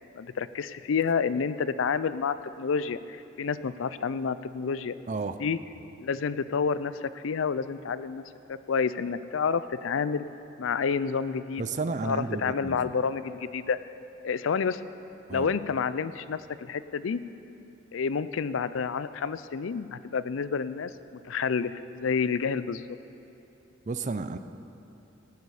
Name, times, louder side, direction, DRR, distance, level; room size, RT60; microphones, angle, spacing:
voice 1, 0.1-4.9 5.4-5.6 6.0-8.2 8.5-10.3 10.6-11.6 12.0-13.8 14.2-14.8 15.3-17.2 17.9-20.9 21.2-23.0, left 5 dB, 85° left, 15 dB, 0.4 m, -29 dB
voice 2, 11.6-12.8 15.3-15.5 23.9-24.4, right 3 dB, 40° right, 10 dB, 0.5 m, -32 dB
15.5 x 12.0 x 4.9 m, 2.9 s
head